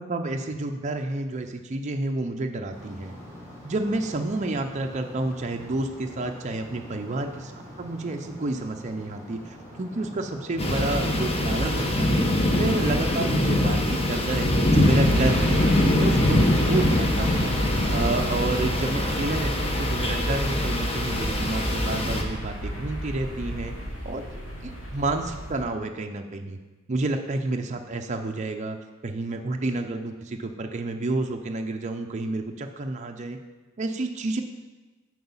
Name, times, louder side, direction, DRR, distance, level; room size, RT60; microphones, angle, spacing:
voice 1, 0.0-3.1 3.6-12.3 12.6-15.6 16.0-16.4 16.6-17.5 17.9-23.7 24.0-26.6 26.9-28.8 29.0-33.4 33.8-34.4, right 2 dB, 35° right, 4 dB, 0.5 m, -30 dB
sound 1, 2.7-20.9, equal, 15° left, 1.9 m, -44 dB
sound 2, 10.6-22.2, left 1 dB, 30° left, 0.9 m, -23 dB
sound 3, 14.8-25.6, equal, 70° left, 2.0 m, -31 dB
7.9 x 4.7 x 7.1 m, 1.2 s
head